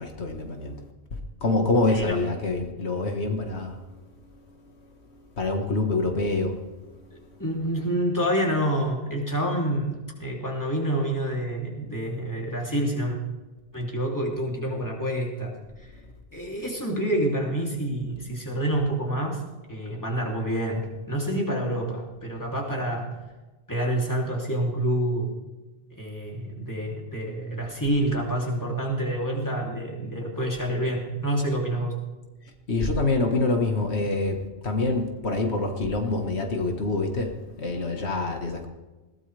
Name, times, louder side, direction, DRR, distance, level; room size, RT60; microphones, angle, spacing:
voice 1, 0.0-3.8 5.4-6.6 32.7-38.7, left 2 dB, 80° left, 3 dB, 2.0 m, -26 dB
voice 2, 1.9-2.2 7.1-13.2 13.7-15.5 16.3-19.4 19.7-23.1 23.7-25.3 25.9-31.9, right 1 dB, 15° left, -2 dB, 3.2 m, -27 dB
21.0 x 17.0 x 3.5 m, 1.2 s
omnidirectional pair, 1.1 m